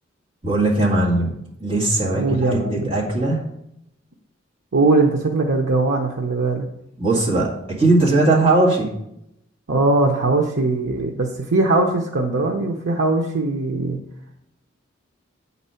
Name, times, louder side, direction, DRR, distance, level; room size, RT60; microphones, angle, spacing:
voice 1, 0.4-3.4 7.0-8.9, right 2 dB, 30° right, -5 dB, 2.0 m, -19 dB
voice 2, 2.2-2.9 4.7-6.7 9.7-14.0, right 3 dB, 85° right, 0 dB, 0.8 m, -20 dB
8.3 x 4.2 x 5.6 m, 0.80 s
head